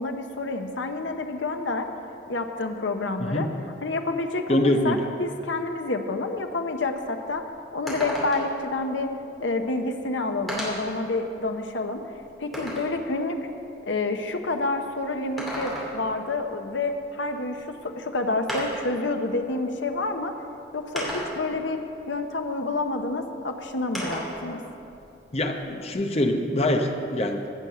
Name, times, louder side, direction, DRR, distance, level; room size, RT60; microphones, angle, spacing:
voice 1, 0.0-1.9 2.3-3.5 3.8-7.4 7.7-9.1 9.4-12.0 12.4-13.4 13.9-20.3 20.7-21.8 22.1-24.6, left 2 dB, 85° left, 5 dB, 0.9 m, -28 dB
voice 2, 4.5-5.1 25.3-27.5, left 1 dB, 35° left, 4 dB, 0.8 m, -24 dB
sound 1, 6.9-7.0 7.4-7.5 7.9-8.6 9.7-9.8 10.5-11.0 11.5-12.9 15.2-16.1 17.6-17.7 18.5-18.9 19.9-20.0 21.0-21.6 23.9-24.4 24.8-25.9, equal, ahead, 2.5 m, -33 dB
15.5 x 6.4 x 6.7 m, 2.7 s
head